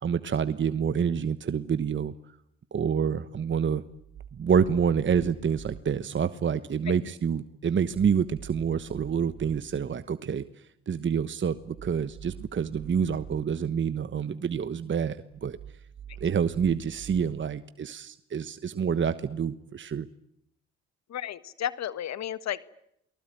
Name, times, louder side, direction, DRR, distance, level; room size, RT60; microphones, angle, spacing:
voice 1, 0.0-2.1 2.7-3.8 4.3-10.4 10.9-15.6 16.2-20.1, right 7 dB, 40° right, 13 dB, 1.2 m, -27 dB
sound 1, 3.9-5.8 7.7-9.6 11.5-13.4 15.3-17.2, right 8 dB, 70° right, 4.0 m, -46 dB
voice 2, 21.1-22.7, left 10 dB, 65° left, 16 dB, 1.4 m, -33 dB
28.5 x 19.5 x 9.2 m, 0.77 s
supercardioid pair, 65°, 30 cm